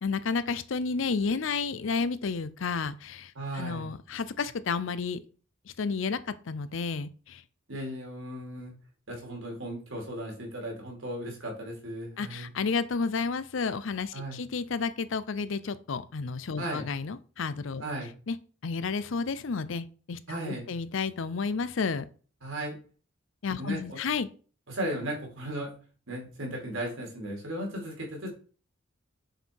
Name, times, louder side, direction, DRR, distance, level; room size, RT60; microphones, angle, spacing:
voice 1, 0.0-5.2 5.8-6.2 6.5-7.4 12.2-17.8 18.3-18.4 18.6-22.1 23.4-24.3, left 5 dB, 65° left, 15 dB, 0.5 m, -31 dB
voice 2, 3.3-3.9 7.7-8.7 9.1-12.5 14.1-14.4 16.6-16.9 17.8-18.1 20.3-20.7 22.4-22.7 23.6-24.0 24.7-25.7 26.1-28.3, right 1 dB, 75° right, 0 dB, 2.8 m, -36 dB
6.5 x 4.5 x 4.5 m, 0.39 s
head